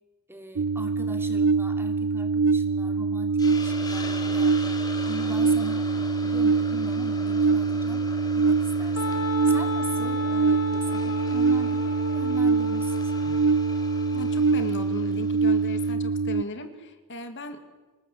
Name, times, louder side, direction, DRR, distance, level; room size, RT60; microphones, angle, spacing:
voice 1, 0.3-4.6 5.1-8.1 8.3-13.4, equal, 10° right, 5 dB, 2.7 m, -41 dB
sound 1, 0.6-16.4, right 4 dB, 65° right, 0.8 m, -24 dB
Hiss, 3.4-15.9, left 2 dB, 20° left, 2.7 m, -42 dB
Wind instrument woodwind instrument, 9.0-14.6, left 3 dB, 80° left, 1.8 m, -35 dB
voice 2, 14.1-17.6, left 2 dB, 55° left, 8 dB, 2.3 m, -37 dB
27.0 x 19.0 x 8.5 m, 1.2 s
head